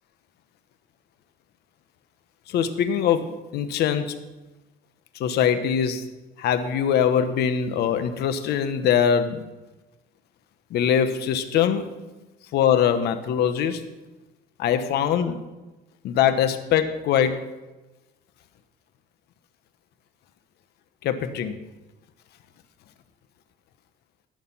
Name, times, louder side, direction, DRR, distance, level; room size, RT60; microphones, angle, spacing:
voice 1, 2.5-4.1 5.2-6.0 6.4-9.4 10.7-11.9 12.5-13.8 14.6-15.4 16.0-17.4 21.0-21.6, left 8 dB, 75° left, 10 dB, 1.2 m, -22 dB
17.5 x 6.7 x 5.7 m, 1.1 s
cardioid pair, 110°, 17 cm